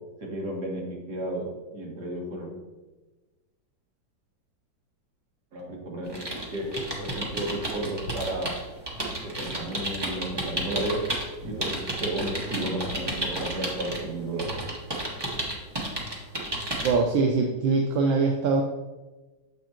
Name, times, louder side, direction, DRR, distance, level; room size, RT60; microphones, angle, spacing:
voice 1, 0.2-2.5 5.5-6.2 6.5-6.7 7.0-8.5 8.9-11.0 11.4-14.5, right 1 dB, 60° right, -3 dB, 2.2 m, -33 dB
sound 1, 6.1-11.3 11.6-14.0 14.4-16.9, right 1 dB, 20° right, 0.7 m, -32 dB
sound 2, 8.0-8.2 8.5-9.0 9.4-9.5 9.8-10.7 11.3-11.6 11.8-11.9 12.1-13.8 14.1-15.5, right 1 dB, 80° left, 1.6 m, -43 dB
voice 2, 16.8-18.6, right 4 dB, 80° right, 1 dB, 1.4 m, -23 dB
7.5 x 6.2 x 2.9 m, 1.2 s
omnidirectional pair, 2.1 m